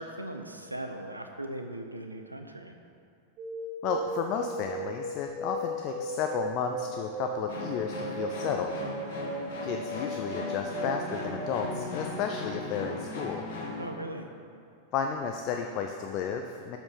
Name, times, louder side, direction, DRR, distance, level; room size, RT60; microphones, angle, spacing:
voice 1, 0.0-2.8 13.8-14.3, right 1 dB, 85° right, 5 dB, 0.5 m, -39 dB
sound 1, 3.4-11.7, right 1 dB, 30° right, 1.3 m, -37 dB
voice 2, 3.8-8.8 9.6-13.4 14.9-16.8, left 7 dB, 40° left, 4 dB, 0.4 m, -33 dB
sound 2, 7.5-13.9, left 2 dB, 55° left, 1.2 m, -37 dB
7.0 x 5.3 x 5.8 m, 2.4 s
figure-of-eight pair, 90°, 0 cm